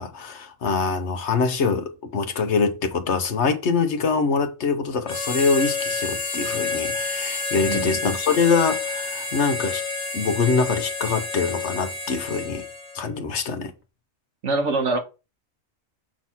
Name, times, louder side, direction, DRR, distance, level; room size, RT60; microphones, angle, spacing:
voice 1, 0.0-9.8 10.1-12.6 12.9-13.7, left 4 dB, 65° left, 1.2 m, -24 dB
Harmonica, 5.0-13.1, left 4 dB, 85° left, 1.6 m, -29 dB
voice 2, 7.6-8.0 14.4-15.0, right 3 dB, 65° right, 1.5 m, -24 dB
7.3 x 3.0 x 5.8 m
omnidirectional pair, 1.3 m